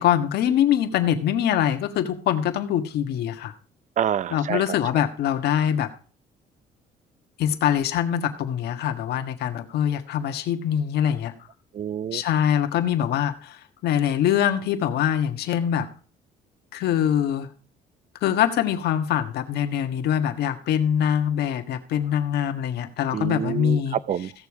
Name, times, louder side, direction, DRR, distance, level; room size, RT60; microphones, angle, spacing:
voice 1, 0.0-3.5 4.3-5.9 7.4-11.3 12.1-15.9 16.7-17.5 18.2-24.0, left 10 dB, 75° left, 1.6 m, -23 dB
voice 2, 4.0-4.7 11.7-12.2 23.1-24.3, right 9 dB, 45° right, 0.6 m, -27 dB
16.0 x 7.0 x 4.8 m
cardioid pair, 110°, 17 cm